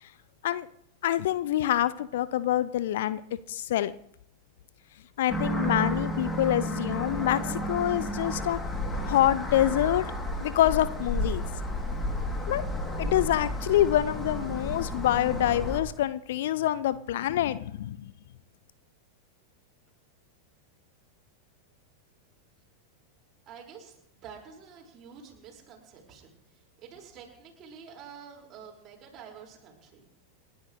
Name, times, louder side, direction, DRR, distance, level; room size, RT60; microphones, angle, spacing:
voice 1, 1.0-3.2 3.5-3.9 5.2-8.6 9.1-10.1 10.4-11.5 12.5-12.6 13.0-18.1, left 12 dB, 55° left, 16 dB, 0.5 m, -26 dB
sound 1, 5.3-15.8, equal, 10° left, 2.9 m, -32 dB
voice 2, 23.5-26.3 26.8-30.1, right 7 dB, 30° right, -1 dB, 5.3 m, -48 dB
29.0 x 12.5 x 3.2 m, 0.75 s
figure-of-eight pair, 90°, 0 cm